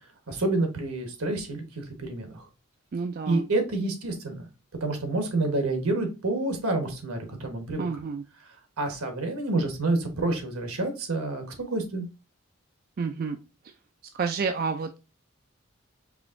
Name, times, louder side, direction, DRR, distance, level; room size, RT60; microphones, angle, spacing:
voice 1, 0.3-2.5 3.3-4.4 4.8-7.9 8.4-12.1, right 2 dB, 80° right, 1.3 m, -28 dB
voice 2, 2.9-3.4 7.8-8.2 13.0-13.4 14.1-15.0, right 5 dB, 40° right, 0.3 m, -29 dB
4.9 x 3.0 x 2.5 m
head